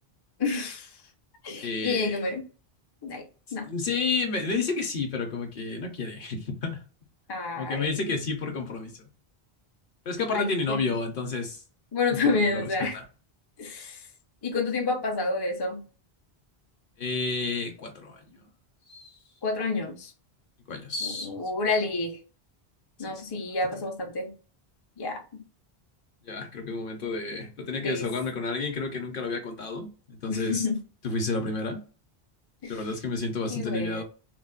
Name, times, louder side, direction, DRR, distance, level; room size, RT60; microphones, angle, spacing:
voice 1, 0.4-0.9 1.4-2.4 3.0-3.3 3.5-3.7 7.3-8.0 10.3-11.0 11.9-13.0 13.6-14.0 14.4-15.8 19.4-20.1 21.0-22.2 23.0-24.3 25.0-25.4 27.8-28.0 30.3-30.8 32.6-32.8 33.5-34.0, left 3 dB, 35° left, 0.4 m, -29 dB
voice 2, 1.6-2.2 3.6-6.8 7.5-9.0 10.1-11.6 12.1-13.0 17.0-18.5 18.9-19.2 20.7-21.3 23.1-23.2 26.2-30.7 31.0-31.8 32.6-34.0, left 3 dB, 60° left, 0.9 m, -31 dB
2.3 x 2.2 x 3.6 m
omnidirectional pair, 1.1 m